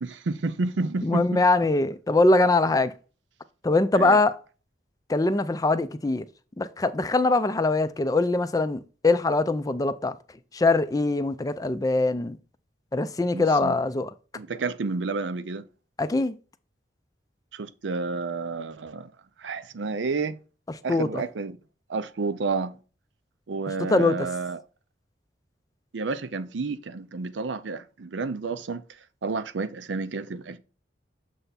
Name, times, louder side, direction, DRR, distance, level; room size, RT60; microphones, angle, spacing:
voice 1, 0.0-1.4 3.9-4.2 13.3-13.8 14.3-15.7 17.5-19.1 19.4-20.4 20.8-21.6 21.9-22.8 23.5-24.6 25.9-28.8 29.2-30.6, right 3 dB, 85° right, 0.6 m, -30 dB
voice 2, 1.0-2.9 3.6-4.4 5.1-6.2 6.6-10.2 10.5-12.4 12.9-14.1 16.0-16.3 20.9-21.2 23.9-24.3, left 2 dB, 20° left, 0.4 m, -22 dB
6.9 x 3.4 x 4.0 m
head